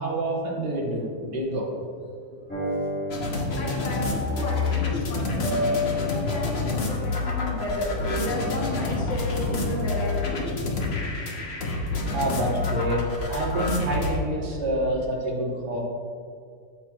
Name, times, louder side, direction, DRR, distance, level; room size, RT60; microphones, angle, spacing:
voice 1, 0.0-1.7 12.1-15.8, right 1 dB, 65° right, -3 dB, 2.0 m, -27 dB
sound 1, 2.5-9.9, left 1 dB, 5° left, 1.6 m, -33 dB
sound 2, 3.1-14.2, left 3 dB, 45° left, 0.8 m, -28 dB
voice 2, 3.6-5.7 6.1-10.3, left 2 dB, 85° left, -5 dB, 1.9 m, -33 dB
13.5 x 4.6 x 2.4 m, 2.2 s
omnidirectional pair, 2.1 m